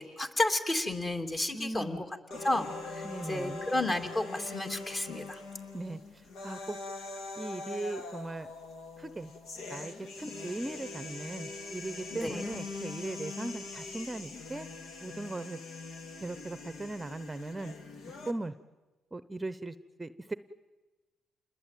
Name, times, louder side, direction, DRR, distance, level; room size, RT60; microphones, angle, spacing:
voice 1, 0.0-2.0 2.4-5.4 12.1-12.4, left 2 dB, 30° left, 6 dB, 2.9 m, -32 dB
voice 2, 1.5-2.0 3.0-3.7 5.7-6.8 7.4-8.5 9.0-9.3 9.7-14.7 15.0-15.6 16.2-17.8 18.3-18.5 19.1-20.3, right 2 dB, 15° right, 13 dB, 0.8 m, -38 dB
sound 1, 2.3-18.3, left 3 dB, 75° left, 2.6 m, -43 dB
28.5 x 21.0 x 9.2 m, 1.2 s
cardioid pair, 90°, 0 cm